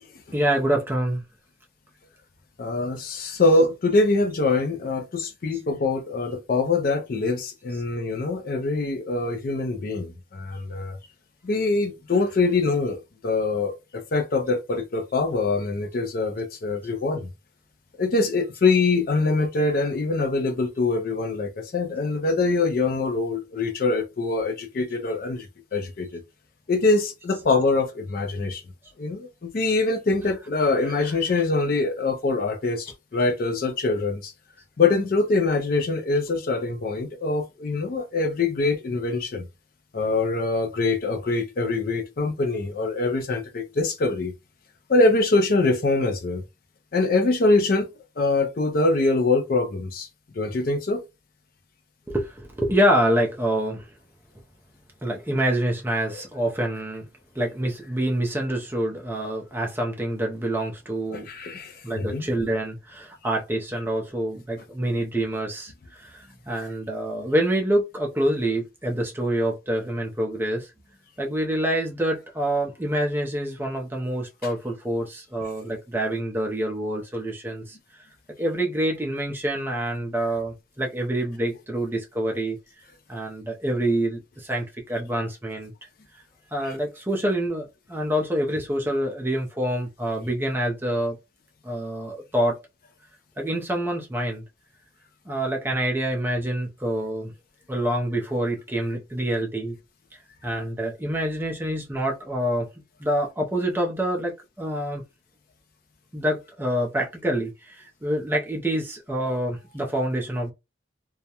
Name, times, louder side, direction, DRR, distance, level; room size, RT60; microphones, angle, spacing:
voice 1, 0.3-1.2 3.4-3.7 7.7-7.8 27.3-27.5 30.2-30.4 30.8-31.4 36.1-36.2 52.1-53.9 55.0-57.1 57.4-61.3 61.8-70.7 71.2-77.8 78.4-82.6 83.1-85.7 86.5-91.2 91.6-92.6 93.4-94.4 95.3-97.3 97.7-99.8 100.4-102.7 103.0-105.0 106.1-110.5, right 1 dB, 10° right, 0.4 m, -26 dB
voice 2, 2.6-11.0 11.4-17.3 18.0-25.5 25.7-26.2 26.7-28.6 29.0-34.3 34.8-39.5 39.9-44.3 44.9-46.4 46.9-47.9 48.2-50.1 50.4-51.0 61.1-62.3 86.6-86.7, left 3 dB, 45° left, 0.4 m, -24 dB
2.3 x 2.0 x 2.8 m
head